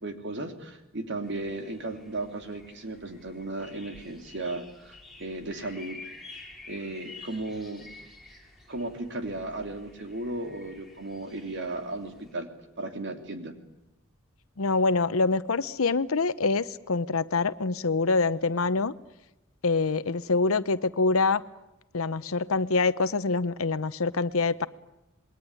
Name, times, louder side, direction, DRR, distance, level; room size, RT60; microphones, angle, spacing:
voice 1, 0.0-6.0 6.7-7.9 8.7-12.5 12.8-13.5, right 2 dB, 60° right, 7 dB, 3.3 m, -35 dB
sound 1, 1.2-12.3, left 3 dB, ahead, 5.4 m, -50 dB
voice 2, 14.6-18.9 19.6-21.4 21.9-24.7, left 3 dB, 90° left, 14 dB, 0.9 m, -25 dB
27.0 x 21.0 x 9.7 m, 0.93 s
head